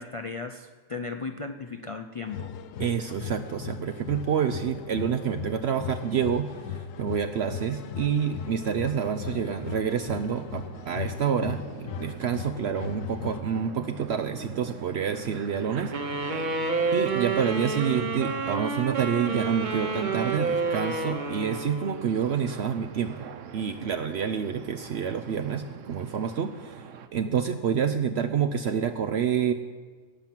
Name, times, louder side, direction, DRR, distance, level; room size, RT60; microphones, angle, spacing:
voice 1, 0.0-2.5, left 4 dB, 55° left, 6 dB, 0.3 m, -36 dB
sound 1, 2.3-13.4, left 8 dB, 90° left, 1.0 m, -38 dB
voice 2, 2.8-11.6 12.0-16.5 16.9-23.3 23.5-26.8 27.1-29.5, right 7 dB, 60° right, 8 dB, 0.8 m, -28 dB
sound 2, 7.4-27.1, right 6 dB, 75° right, 1.1 m, -44 dB
sound 3, 15.9-22.3, right 4 dB, 40° right, 1.0 m, -29 dB
17.5 x 6.0 x 7.4 m, 1.5 s
omnidirectional pair, 1.3 m